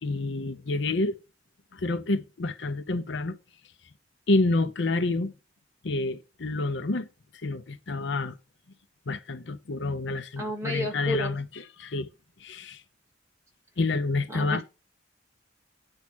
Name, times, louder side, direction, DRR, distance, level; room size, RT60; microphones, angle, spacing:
voice 1, 0.0-1.2 1.7-3.3 4.3-5.3 5.8-7.1 7.4-8.4 9.1-11.5 11.8-12.1 12.4-12.8 13.8-14.6, left 2 dB, 60° left, 0.7 m, -28 dB
voice 2, 10.4-11.4 14.3-14.6, left 1 dB, 15° right, 2.3 m, -31 dB
9.7 x 4.8 x 6.2 m
head